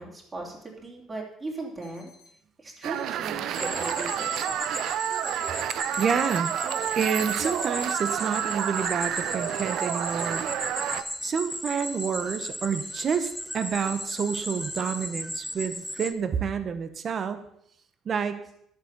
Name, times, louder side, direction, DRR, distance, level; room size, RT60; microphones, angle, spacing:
voice 1, 0.0-2.1 2.6-4.8, right 2 dB, 20° right, -1 dB, 3.0 m, -38 dB
sound 1, 1.8-2.3 2.8-3.3 3.8-4.3 4.8-5.3 5.8-6.3 6.8-7.3 7.8-8.3 8.8-9.3 9.8-10.3 10.8-11.3 11.8-12.3 12.8-13.3 13.8-15.0, left 6 dB, 65° left, 2.5 m, -53 dB
sound 2, 2.8-11.0, right 10 dB, 65° right, 0.7 m, -30 dB
sound 3, 3.5-16.1, equal, ahead, 0.5 m, -36 dB
voice 2, 6.0-6.5 7.0-10.4 11.2-17.4 18.0-18.5, right 6 dB, 40° right, 10 dB, 1.1 m, -29 dB
11.0 x 7.6 x 6.7 m, 0.71 s
cardioid pair, 140°, 0 cm